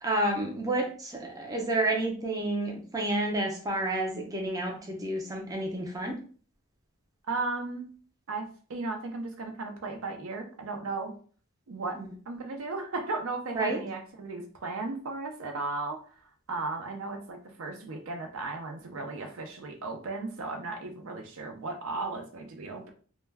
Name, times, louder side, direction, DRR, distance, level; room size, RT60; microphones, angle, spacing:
voice 1, 0.0-6.2 12.0-12.1 13.5-13.8, right 1 dB, 15° right, 0 dB, 0.4 m, -30 dB
voice 2, 7.3-7.9 8.3-11.2 11.7-22.9, right 3 dB, 65° right, 4 dB, 0.5 m, -35 dB
2.2 x 2.1 x 3.3 m, 0.42 s
head